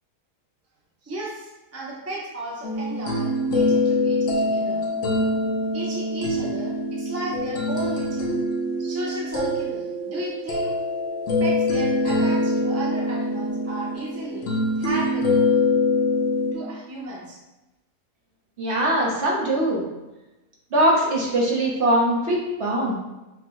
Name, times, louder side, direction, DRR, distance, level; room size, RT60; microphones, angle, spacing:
voice 1, 1.0-4.8 5.7-8.4 8.8-10.7 11.4-15.5 16.5-17.4, right 2 dB, 20° right, -5 dB, 0.4 m, -34 dB
sound 1, 2.6-16.5, left 2 dB, 60° left, 0.9 m, -24 dB
voice 2, 18.6-19.8 20.7-23.0, right 1 dB, 50° right, -4 dB, 1.2 m, -21 dB
6.1 x 2.3 x 3.0 m, 1.0 s
omnidirectional pair, 1.6 m